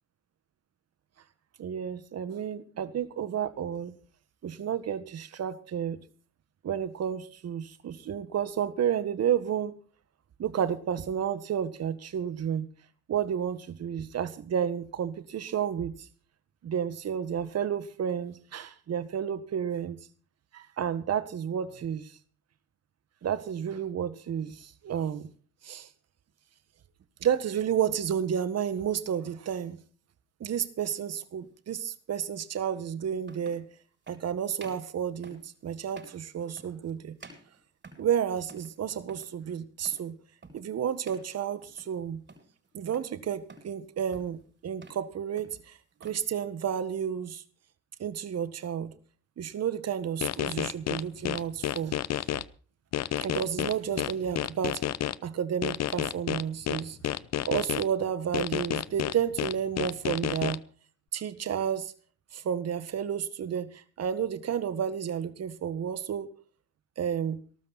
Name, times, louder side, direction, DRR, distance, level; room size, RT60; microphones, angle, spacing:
voice 1, 1.6-4.0 4.4-6.0 6.6-9.7 10.4-12.7 13.1-15.9 16.6-20.0 20.5-22.1 23.2-25.3 25.6-25.9 27.2-29.8 30.4-33.6 34.1-37.1 38.0-40.1 40.5-42.2 42.7-47.4 48.0-48.9 49.4-52.3 53.2-54.8 55.2-57.0 57.5-60.6 61.1-61.9 62.3-66.3 67.0-67.4, right 8 dB, 60° right, 13 dB, 1.7 m, -31 dB
sound 1, 31.0-31.2 32.5-32.6 33.2-33.7 34.0-34.3 34.6-34.9 35.2-35.5 35.9-36.2 36.6-36.9 37.2-38.2 38.5-38.8 39.0-39.3 39.8-40.1 40.4-40.7 41.0-41.3 41.6-42.0 42.3-43.1 43.5-43.8 44.1-44.4 44.7-45.1 45.4-46.2, right 3 dB, 40° right, 7.4 m, -51 dB
sound 2, 50.2-52.4 52.9-55.1 55.6-57.8 58.3-60.6, left 12 dB, 60° left, 0.7 m, -30 dB
18.5 x 13.0 x 4.3 m, 0.41 s
supercardioid pair, 65°, 29 cm